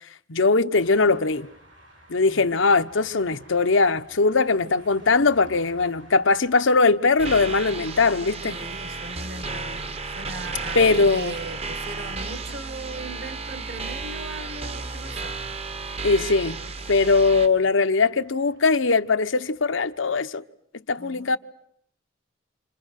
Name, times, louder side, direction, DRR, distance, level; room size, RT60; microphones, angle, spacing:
voice 1, 0.3-1.5 2.1-8.6 10.7-11.4 16.0-16.6 16.9-20.4 20.9-21.4, left 3 dB, 85° left, 1.0 m, -20 dB
sound 1, 0.7-20.2, right 1 dB, 80° right, 6.6 m, -53 dB
sound 2, 7.2-17.5, right 3 dB, 30° right, 1.0 m, -33 dB
voice 2, 8.4-15.3 15.7-16.0 21.0-21.4, right 2 dB, 55° right, 1.7 m, -39 dB
27.5 x 27.0 x 6.5 m
head